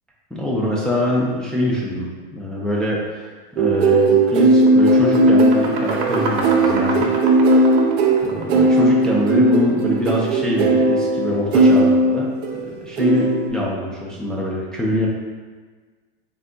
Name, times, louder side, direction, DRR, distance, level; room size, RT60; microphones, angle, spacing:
voice 1, 0.3-3.3 3.6-7.2 8.2-15.1, left 1 dB, ahead, -5 dB, 0.4 m, -24 dB
sound 1, 3.6-12.6 13.0-13.5, right 2 dB, 85° right, 0.6 m, -17 dB
sound 2, 3.7-3.9 4.2-9.2, right 3 dB, 50° right, 0.8 m, -29 dB
3.3 x 2.3 x 3.7 m, 1.4 s
supercardioid pair, 125°, 31 cm